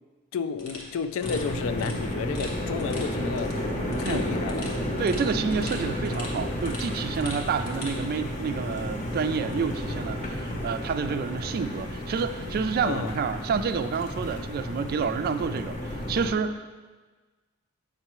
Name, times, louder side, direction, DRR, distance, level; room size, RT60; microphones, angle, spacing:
voice 1, 0.3-3.5 4.0-4.7 12.8-13.1, left 5 dB, 70° left, 10 dB, 0.4 m, -32 dB
sound 1, 0.6-8.0, left 1 dB, 85° left, 1.3 m, -43 dB
sound 2, 1.2-16.3, left 1 dB, 35° left, 0.8 m, -32 dB
voice 2, 5.0-16.7, right 5 dB, 45° right, 10 dB, 0.3 m, -29 dB
7.8 x 5.5 x 3.0 m, 1.4 s
head